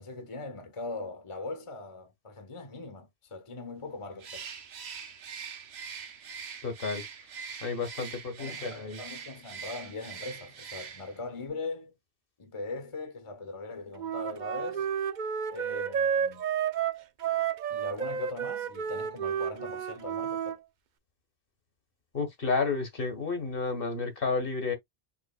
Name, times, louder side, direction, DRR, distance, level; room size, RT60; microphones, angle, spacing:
voice 1, 0.0-4.5 8.0-11.9 12.4-14.9 15.5-16.4 17.7-20.6, left 3 dB, 30° left, 1.2 m, -40 dB
Bird, 4.2-11.3, right 6 dB, 85° right, 1.1 m, -43 dB
voice 2, 6.6-7.0 7.6-9.0 22.1-24.8, left 4 dB, 60° left, 1.5 m, -31 dB
Wind instrument woodwind instrument, 14.0-20.6, right 8 dB, 55° right, 0.6 m, -31 dB
5.7 x 3.8 x 2.3 m
omnidirectional pair, 1.1 m